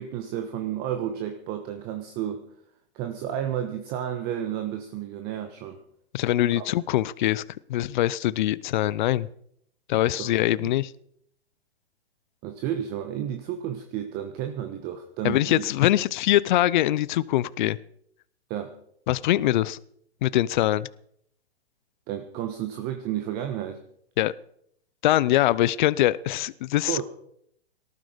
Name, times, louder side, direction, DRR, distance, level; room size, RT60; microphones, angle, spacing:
voice 1, 0.0-2.4 2.9-5.8 6.5-6.6 10.2-10.3 10.6-10.7 12.4-15.7 18.5-18.7 22.1-23.8 26.8-27.0, right 10 dB, 30° right, 1.4 m, -31 dB
voice 2, 6.1-7.4 7.7-9.3 9.9-10.9 15.2-17.8 19.1-19.8 20.2-20.9 24.2-24.3 25.0-27.0, left 14 dB, 45° left, 0.7 m, -23 dB
19.0 x 14.0 x 5.2 m
hypercardioid pair, 135°, 33 cm